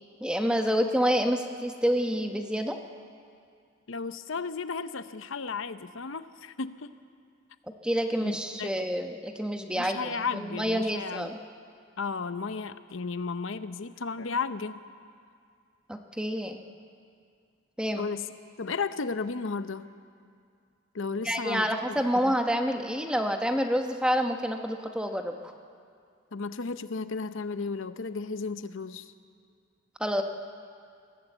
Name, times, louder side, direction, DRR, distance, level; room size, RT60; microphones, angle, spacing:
voice 1, 0.2-2.8 7.8-11.4 15.9-16.6 17.8-18.1 21.2-25.3 30.0-30.2, equal, 5° right, 5 dB, 1.0 m, -28 dB
voice 2, 3.9-6.9 8.2-8.7 9.7-11.3 12.0-14.8 18.0-18.3 18.6-19.9 20.9-22.3 26.3-29.1, left 4 dB, 70° left, 12 dB, 0.7 m, -34 dB
21.0 x 17.0 x 8.1 m, 2.3 s
head